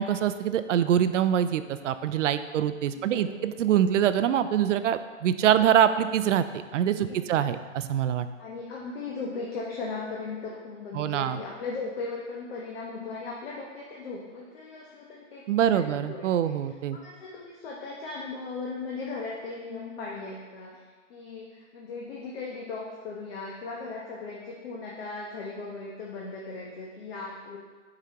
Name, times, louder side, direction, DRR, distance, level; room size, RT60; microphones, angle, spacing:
voice 1, 0.0-8.3 10.9-11.4 15.5-17.0, right 10 dB, 70° right, 12 dB, 0.5 m, -24 dB
voice 2, 2.9-3.5 7.1-7.7 8.4-16.5 16.9-20.8 21.1-27.6, left 3 dB, 50° left, -3 dB, 1.0 m, -38 dB
6.6 x 5.0 x 2.9 m, 1.4 s
hypercardioid pair, 140°, 38 cm